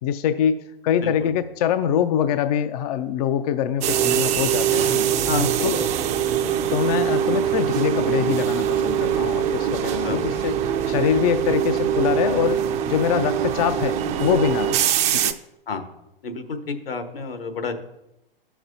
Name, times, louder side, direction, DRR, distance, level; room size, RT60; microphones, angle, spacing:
voice 1, 0.0-5.1 5.6-5.8 6.7-10.5 10.9-12.6 12.9-15.3, left 9 dB, 40° left, 10 dB, 0.5 m, -24 dB
sound 1, 3.8-15.3, right 9 dB, 25° right, 0.5 m, -23 dB
voice 2, 5.3-5.8 10.0-10.3 15.7-15.9 16.2-17.7, left 4 dB, 75° left, 7 dB, 1.3 m, -29 dB
14.0 x 5.9 x 2.7 m, 0.88 s
figure-of-eight pair, 110°, 29 cm